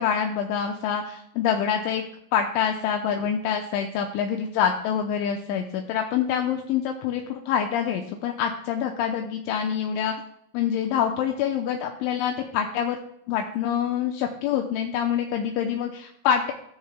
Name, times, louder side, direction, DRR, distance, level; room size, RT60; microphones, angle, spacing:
voice 1, 0.0-2.0 2.3-10.1 10.5-13.0 13.3-16.5, left 8 dB, 80° left, 3 dB, 2.9 m, -26 dB
15.5 x 13.5 x 2.2 m, 0.75 s
omnidirectional pair, 5.9 m